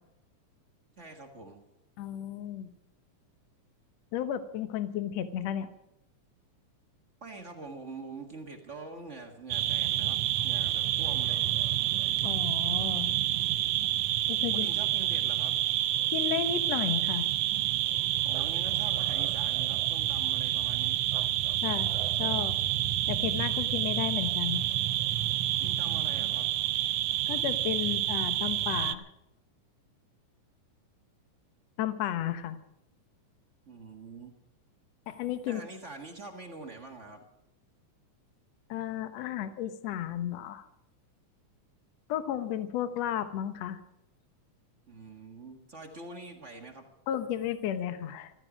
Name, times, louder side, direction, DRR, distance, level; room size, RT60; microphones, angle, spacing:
voice 1, 1.0-1.6 7.2-11.5 14.5-15.6 18.2-21.0 25.6-26.5 33.7-34.4 35.5-37.2 44.9-46.9, right 3 dB, 35° right, 4 dB, 1.2 m, -45 dB
voice 2, 2.0-2.7 4.1-5.7 12.2-13.1 14.3-14.7 16.1-17.3 21.6-21.9 22.2-22.6 23.1-24.7 27.3-29.1 31.8-32.6 35.1-35.6 38.7-40.7 42.1-43.8 47.1-48.3, left 10 dB, 65° left, 11 dB, 2.0 m, -33 dB
sound 1, 9.5-28.9, right 12 dB, 85° right, 1.4 m, -28 dB
15.0 x 14.5 x 6.1 m, 0.84 s
omnidirectional pair, 3.6 m